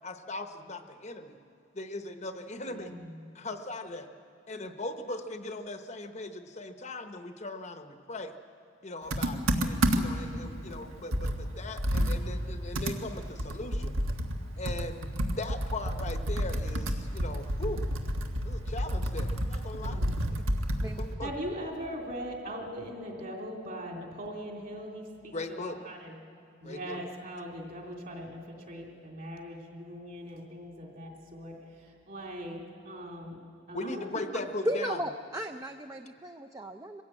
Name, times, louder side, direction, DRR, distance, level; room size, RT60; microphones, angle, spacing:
voice 1, 0.0-1.4 1.7-3.0 3.3-4.1 4.5-8.3 8.8-14.0 14.6-17.8 18.4-20.0 21.0-21.3 25.3-25.8 26.6-27.0 33.7-35.0, left 2 dB, 35° left, 7 dB, 0.8 m, -39 dB
voice 2, 2.6-3.2 19.8-20.3 21.2-26.2 26.6-33.4 33.7-34.5, equal, 40° right, 1 dB, 3.0 m, -41 dB
Computer keyboard, 9.1-10.3 10.7-10.8 11.1-14.4 14.7-21.1, equal, 80° right, 1.5 m, -30 dB
voice 3, 34.7-37.0, equal, 15° right, 6 dB, 0.5 m, -35 dB
23.0 x 16.0 x 8.8 m, 2.5 s
head